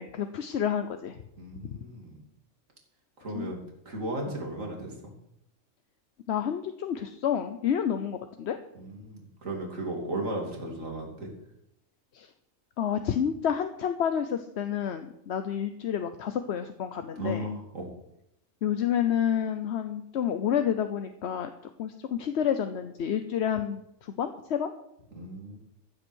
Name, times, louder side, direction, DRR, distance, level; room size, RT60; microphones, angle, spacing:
voice 1, 0.0-1.2 3.3-3.5 4.3-4.4 6.3-8.6 12.1-12.3 12.8-17.5 18.6-21.5 21.8-24.7, left 9 dB, 60° left, 8 dB, 1.0 m, -29 dB
voice 2, 1.4-2.2 3.2-3.6 3.8-5.1 8.7-11.3 17.2-17.9 25.1-25.6, right 1 dB, 80° right, 0 dB, 3.1 m, -35 dB
14.5 x 7.9 x 6.3 m, 0.80 s
omnidirectional pair, 1.3 m